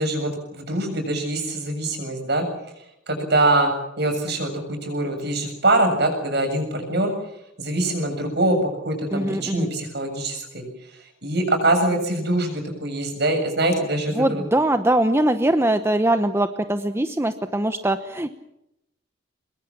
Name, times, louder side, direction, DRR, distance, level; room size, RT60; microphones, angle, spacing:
voice 1, 0.0-2.4 3.1-7.1 7.6-8.6 8.8-10.6 11.2-14.4, right 2 dB, 55° right, 5 dB, 7.2 m, -23 dB
voice 2, 9.1-9.7 14.1-18.3, right 1 dB, 15° right, 9 dB, 0.9 m, -22 dB
24.5 x 22.0 x 7.3 m, 0.84 s
head